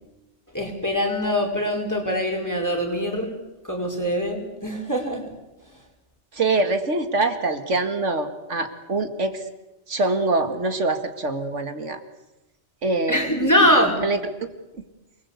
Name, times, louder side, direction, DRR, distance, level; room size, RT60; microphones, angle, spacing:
voice 1, 0.5-3.4 3.7-5.2 13.1-14.0, equal, 15° left, 1 dB, 5.4 m, -23 dB
voice 2, 6.3-9.4 9.9-12.0 12.8-13.5 14.0-14.5, right 2 dB, 85° right, 8 dB, 2.4 m, -24 dB
28.5 x 21.5 x 8.4 m, 0.97 s
omnidirectional pair, 1.2 m